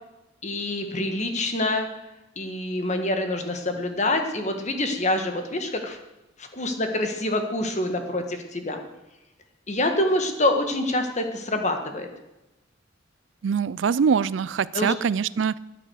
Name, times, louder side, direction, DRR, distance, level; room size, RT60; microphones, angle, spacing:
voice 1, 0.4-1.9 2.3-6.0 6.4-8.8 9.7-12.1 14.7-14.9, left 1 dB, 35° left, 5 dB, 1.7 m, -26 dB
voice 2, 13.4-15.6, right 6 dB, 70° right, 20 dB, 0.4 m, -23 dB
13.5 x 10.0 x 6.5 m, 0.97 s
head